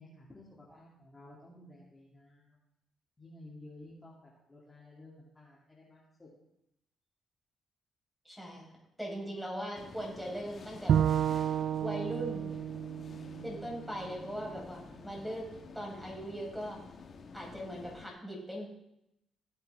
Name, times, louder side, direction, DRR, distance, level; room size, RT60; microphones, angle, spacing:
voice 1, 0.0-2.6 3.2-6.3, left 1 dB, 20° left, -5 dB, 2.6 m, -54 dB
voice 2, 8.2-8.7 9.0-11.0 11.8-12.5 13.4-15.4 15.7-16.8 17.3-18.7, equal, 5° right, -2 dB, 4.7 m, -39 dB
sound 1, 9.7-18.1, left 5 dB, 50° left, 1.2 m, -50 dB
Bowed string instrument, 10.9-14.2, right 9 dB, 70° right, 0.3 m, -31 dB
17.0 x 7.9 x 3.5 m, 0.81 s
cardioid pair, 90°, 0 cm